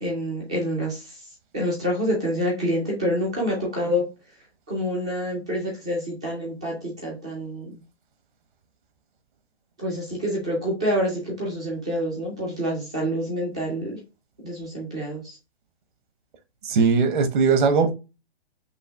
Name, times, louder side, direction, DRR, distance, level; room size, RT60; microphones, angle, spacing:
voice 1, 0.0-1.0 1.5-4.0 4.7-6.7 7.0-7.7 9.8-13.9 14.4-15.2, equal, 5° right, 0.3 m, -27 dB
voice 2, 16.6-17.9, right 5 dB, 50° right, 0.9 m, -19 dB
5.5 x 2.5 x 3.4 m
hypercardioid pair, 150°, 32 cm